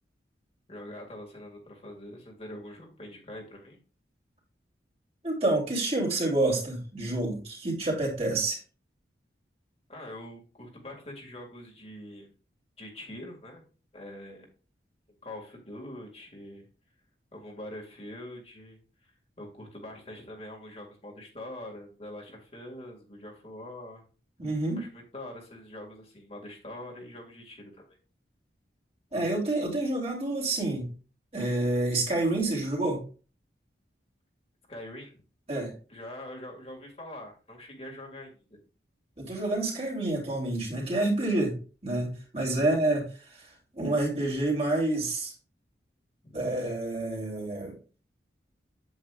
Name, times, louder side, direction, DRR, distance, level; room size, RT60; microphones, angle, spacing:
voice 1, 0.7-3.8 9.9-12.3 12.8-13.6 13.9-14.5 15.2-16.7 17.3-19.1 19.4-24.0 24.8-28.0 34.7-35.2 35.9-38.4 42.6-42.9 46.2-46.5, left 1 dB, 35° left, -1 dB, 2.1 m, -44 dB
voice 2, 5.2-8.6 24.4-24.8 29.1-30.9 31.3-33.0 35.5-35.7 39.2-41.5 41.8-43.5 43.7-45.3 46.3-47.7, right 2 dB, 35° right, -1 dB, 3.2 m, -28 dB
8.5 x 8.5 x 2.4 m, 0.36 s
head